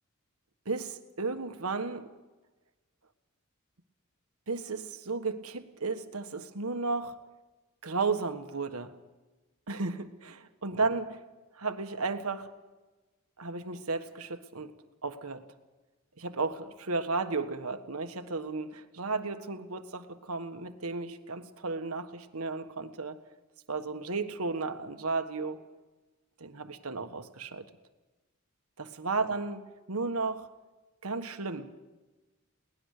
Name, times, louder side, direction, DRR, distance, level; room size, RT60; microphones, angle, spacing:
voice 1, 0.6-2.1 4.5-7.2 7.8-8.9 9.7-11.2 11.5-12.5 13.4-14.7 15.0-15.4 16.2-23.2 23.7-25.6 26.4-27.6 28.8-29.6 29.9-30.5 31.0-31.8, right 3 dB, 90° right, 8 dB, 1.5 m, -34 dB
23.0 x 19.0 x 6.7 m, 1.2 s
head